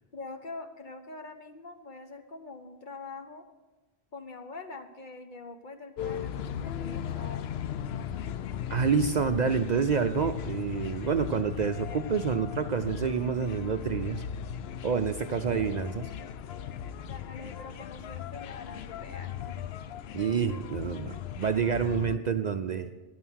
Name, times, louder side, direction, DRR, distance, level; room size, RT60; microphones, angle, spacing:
voice 1, 0.1-3.4 4.1-7.5 17.1-19.6, left 3 dB, 50° left, 6 dB, 1.1 m, -44 dB
sound 1, 6.0-22.2, left 9 dB, 75° left, 0.8 m, -37 dB
voice 2, 8.7-14.2 14.8-16.1 20.1-22.9, right 6 dB, 55° right, 8 dB, 0.5 m, -28 dB
11.0 x 9.2 x 6.3 m, 1.2 s
omnidirectional pair, 1.1 m